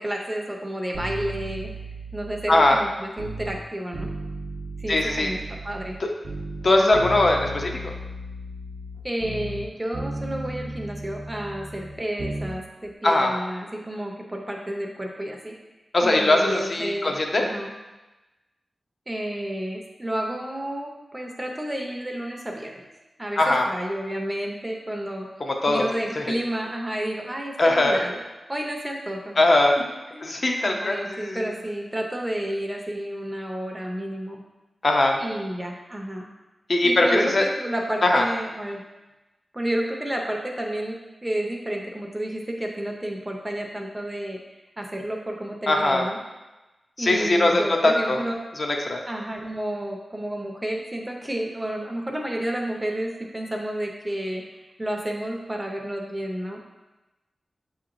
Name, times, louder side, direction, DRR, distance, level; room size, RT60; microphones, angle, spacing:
voice 1, 0.0-1.7 2.1-4.1 4.8-6.0 9.0-15.6 16.0-17.7 19.1-22.8 23.2-25.3 25.7-29.4 30.1-30.3 30.6-34.4 35.2-36.3 36.8-38.8 39.5-44.4 44.8-46.2 47.0-48.3 49.1-56.6, right 1 dB, 15° right, 1 dB, 0.5 m, -31 dB
sound 1, 0.9-3.6 3.9-6.0 6.2-9.7 9.9-12.6 12.8-12.9, right 1 dB, 65° right, 0.6 m, -35 dB
voice 2, 2.5-2.8 4.9-5.3 6.0-6.1 6.6-7.9 13.0-13.4 15.9-17.4 23.4-23.7 25.5-25.8 26.2-26.3 27.6-28.0 29.4-29.8 30.2-31.4 34.8-35.2 36.7-37.5 38.0-38.2 45.7-46.0 47.0-48.2 48.6-49.0, left 2 dB, 45° left, 1 dB, 0.5 m, -20 dB
6.7 x 2.9 x 2.5 m, 1.1 s
wide cardioid pair, 125°, 0 cm